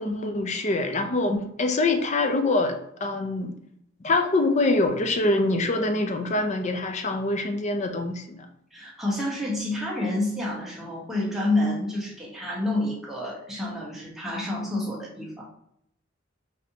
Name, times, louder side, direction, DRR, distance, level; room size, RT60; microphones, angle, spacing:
voice 1, 0.0-1.3 1.6-3.5 4.0-8.5, left 2 dB, 35° left, 6 dB, 0.5 m, -25 dB
voice 2, 8.7-15.4, left 1 dB, ahead, -5 dB, 1.0 m, -28 dB
5.3 x 2.8 x 2.8 m, 0.73 s
head